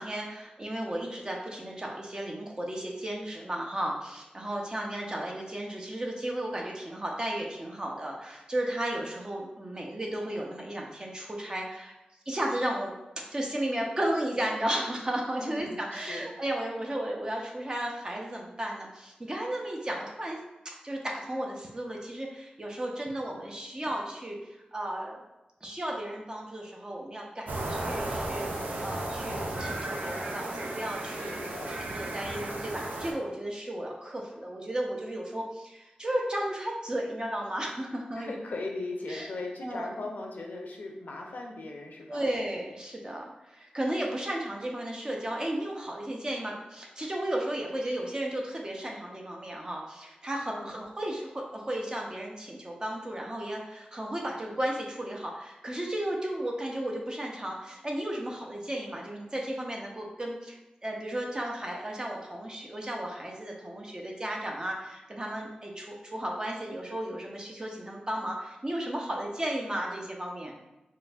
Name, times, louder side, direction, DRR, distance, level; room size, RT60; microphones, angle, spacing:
voice 1, 0.0-11.9 12.3-12.9 13.3-20.4 20.8-24.4 24.7-25.2 25.6-31.4 31.7-38.3 39.1-39.3 39.6-39.9 42.1-70.6, right 1 dB, 30° right, -1 dB, 0.6 m, -34 dB
voice 2, 15.4-16.3 31.2-31.8 38.1-42.3 50.5-50.8, left 2 dB, 75° left, 1 dB, 0.5 m, -39 dB
sound 1, 27.5-33.1, right 1 dB, 85° right, 0.5 m, -34 dB
3.7 x 2.6 x 2.3 m, 0.98 s
wide cardioid pair, 95°, 3 cm